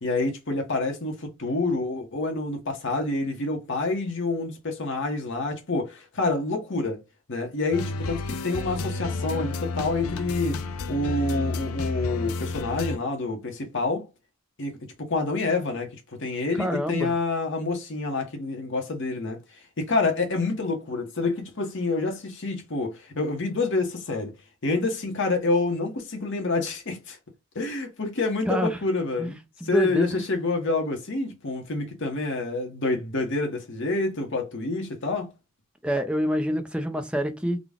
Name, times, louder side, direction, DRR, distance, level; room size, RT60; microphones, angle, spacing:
voice 1, 0.0-7.0 7.3-10.6 10.9-14.1 14.6-19.4 19.8-24.3 24.6-27.2 27.5-29.4 29.6-35.3, left 3 dB, 55° left, 1.0 m, -27 dB
sound 1, 7.7-13.0, left 3 dB, 75° left, 0.5 m, -30 dB
voice 2, 16.6-17.2 28.5-28.8 29.2-29.3 29.6-30.2 35.8-37.6, equal, 5° right, 0.5 m, -27 dB
3.9 x 2.2 x 3.5 m
head